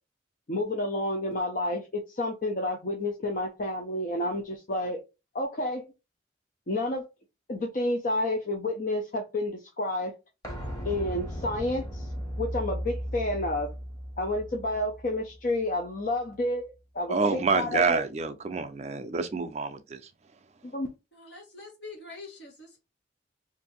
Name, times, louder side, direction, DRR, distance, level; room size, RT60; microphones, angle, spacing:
voice 1, 0.5-5.0 5.3-5.8 6.7-7.1 7.5-10.2 10.8-12.1 12.4-13.7 14.2-16.7 16.9-17.2 17.5-18.0 20.7-20.9, left 1 dB, 45° left, 0.5 m, -30 dB
sound 1, 10.4-16.1 16.4-16.5, equal, 20° left, 1.1 m, -37 dB
voice 2, 17.1-20.0, right 4 dB, 35° right, 0.4 m, -27 dB
voice 3, 21.1-22.8, left 3 dB, 75° left, 1.4 m, -45 dB
2.6 x 2.6 x 3.9 m
head